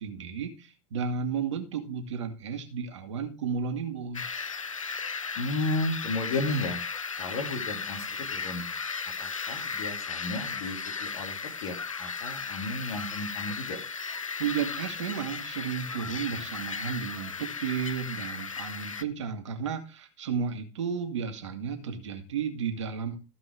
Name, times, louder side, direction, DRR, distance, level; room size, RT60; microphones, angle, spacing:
voice 1, 0.0-4.5 14.4-23.2, right 6 dB, 65° right, 5 dB, 2.1 m, -33 dB
sound 1, 4.1-19.0, left 5 dB, 85° left, 0.6 m, -36 dB
voice 2, 5.4-6.8 7.2-8.7 9.2-13.8, left 2 dB, 60° left, 4 dB, 2.8 m, -33 dB
14.5 x 5.2 x 4.8 m, 0.31 s
figure-of-eight pair, 85°, 16 cm